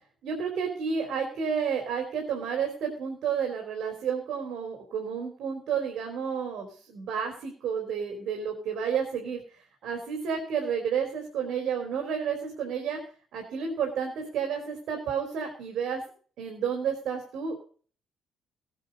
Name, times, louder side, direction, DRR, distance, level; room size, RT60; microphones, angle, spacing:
voice 1, 0.2-13.0 13.3-16.0 16.4-17.6, right 7 dB, 65° right, 3 dB, 3.8 m, -31 dB
18.5 x 9.1 x 5.4 m, 0.43 s
cardioid pair, 175°, 0 cm